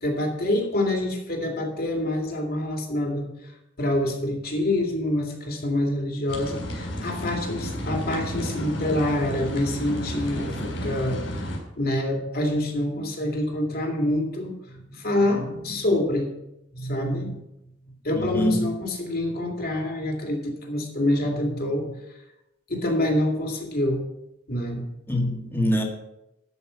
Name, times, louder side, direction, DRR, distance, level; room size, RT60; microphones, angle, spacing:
voice 1, 0.0-3.5 3.8-11.2 11.8-16.3 16.7-17.4 18.0-21.9 22.7-24.0 24.5-24.8, left 1 dB, 55° left, 2 dB, 2.3 m, -26 dB
sound 1, 6.3-11.6, equal, 85° left, 4.0 m, -32 dB
voice 2, 18.2-18.8 25.1-25.8, equal, 10° left, 1 dB, 1.7 m, -24 dB
12.5 x 5.4 x 6.9 m, 0.89 s
head